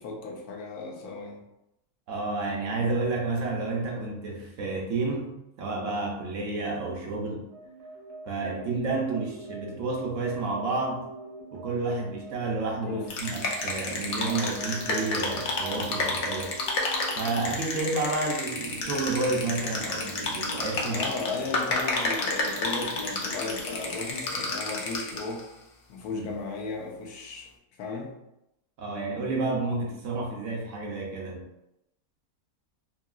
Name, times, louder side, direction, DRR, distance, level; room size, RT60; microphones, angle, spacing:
voice 1, 0.0-1.4 12.9-13.1 20.9-25.4 25.9-27.5 27.8-28.1, left 4 dB, 90° left, 0 dB, 1.1 m, -35 dB
voice 2, 2.1-7.4 8.3-11.0 11.5-16.6 17.2-21.0 26.1-26.3 28.8-31.5, right 3 dB, 70° right, -1 dB, 0.8 m, -30 dB
sound 1, 7.5-25.1, right 1 dB, 50° right, 0.4 m, -44 dB
sound 2, 13.1-25.4, left 2 dB, 65° left, 0.9 m, -31 dB
3.0 x 2.7 x 2.3 m, 0.87 s
omnidirectional pair, 1.6 m